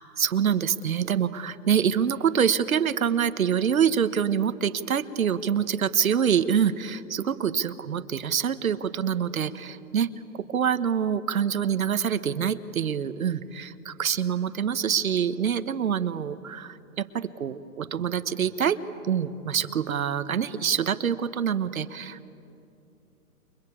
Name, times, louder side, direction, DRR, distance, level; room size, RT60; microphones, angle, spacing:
voice 1, 0.2-18.8 19.0-22.3, right 8 dB, 65° right, 12 dB, 1.2 m, -26 dB
29.0 x 23.5 x 8.6 m, 2.8 s
hypercardioid pair, 180°, 45 cm